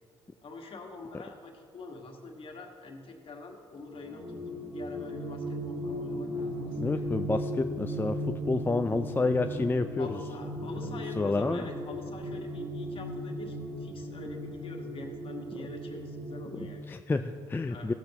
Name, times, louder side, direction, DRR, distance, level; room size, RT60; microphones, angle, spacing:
voice 1, 0.4-7.1 10.0-16.8 17.7-17.9, left 3 dB, 50° left, 2 dB, 1.7 m, -45 dB
Nature Drone, 3.9-16.7, equal, 40° right, 2.0 m, -37 dB
voice 2, 6.8-10.1 11.2-11.7 16.9-17.9, left 3 dB, 20° left, 7 dB, 0.4 m, -29 dB
15.5 x 8.0 x 3.0 m, 2.2 s
supercardioid pair, 55°, 12 cm